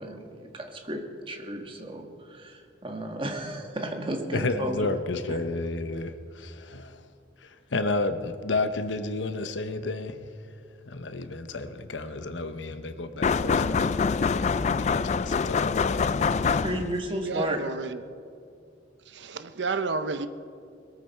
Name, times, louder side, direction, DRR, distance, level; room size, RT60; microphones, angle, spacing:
voice 1, 0.0-4.9 5.3-5.4 16.6-17.6, right 1 dB, 30° right, 4 dB, 1.5 m, -33 dB
voice 2, 4.3-7.0 7.4-10.3 10.9-14.1 14.4-16.0, left 2 dB, 85° left, 9 dB, 1.0 m, -31 dB
sound 1, 13.2-17.1, left 5 dB, 40° left, 0.3 m, -25 dB
voice 3, 17.1-18.2 19.1-20.3, right 4 dB, 70° right, 11 dB, 0.7 m, -32 dB
21.5 x 14.0 x 4.5 m, 2.4 s
head